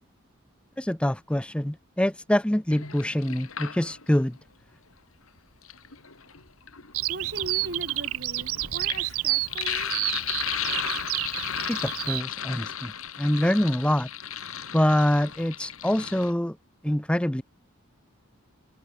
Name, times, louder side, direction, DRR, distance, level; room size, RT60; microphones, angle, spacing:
voice 1, 0.8-4.4 11.7-14.1 14.7-16.6 16.8-17.4, left 1 dB, 5° left, 0.5 m, -25 dB
Sink (filling or washing), 2.7-4.2 5.4-16.3, left 9 dB, 80° left, 3.4 m, -35 dB
Bird vocalization bird call bird song, 6.9-12.2, right 18 dB, 80° right, 0.5 m, -30 dB
voice 2, 7.1-9.9, right 1 dB, 50° right, 6.0 m, -39 dB
head